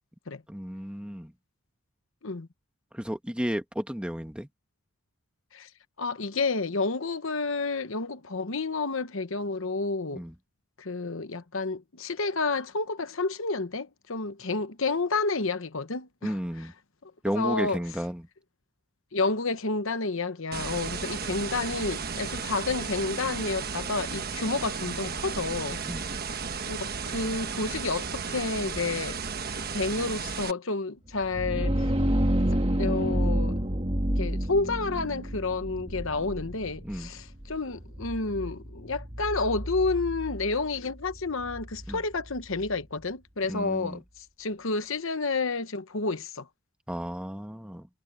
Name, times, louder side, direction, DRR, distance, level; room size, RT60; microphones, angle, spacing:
voice 1, 0.5-1.3 2.9-4.5 10.1-10.3 16.2-16.7 17.2-18.3 25.8-26.0 36.8-37.1 41.9-42.0 43.5-44.0 46.9-47.9, equal, 5° right, 1.5 m, -33 dB
voice 2, 6.0-10.2 10.8-16.4 17.3-17.8 19.1-25.8 26.7-29.2 29.7-31.9 32.8-33.6 34.2-46.5, left 3 dB, 60° left, 1.1 m, -30 dB
sound 1, 20.5-30.5, right 5 dB, 45° right, 1.3 m, -34 dB
sound 2, 31.1-42.8, equal, 25° right, 2.0 m, -30 dB
head